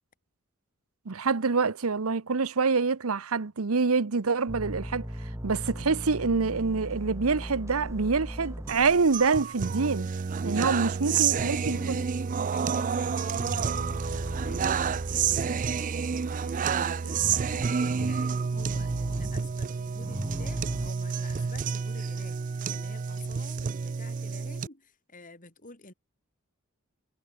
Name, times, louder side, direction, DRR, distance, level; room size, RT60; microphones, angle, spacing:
voice 1, 1.1-5.1 5.4-10.1 10.4-12.0, right 4 dB, 80° right, 0.9 m, -26 dB
sound 1, 4.5-11.2 11.4-12.4 12.8-16.0 16.3-20.9, equal, 15° right, 2.3 m, -39 dB
sound 2, 8.7-24.7, right 6 dB, 40° right, 0.4 m, -29 dB
voice 2, 11.0-12.1 12.5-16.0 16.3-25.9, left 2 dB, 40° left, 5.0 m, -48 dB
head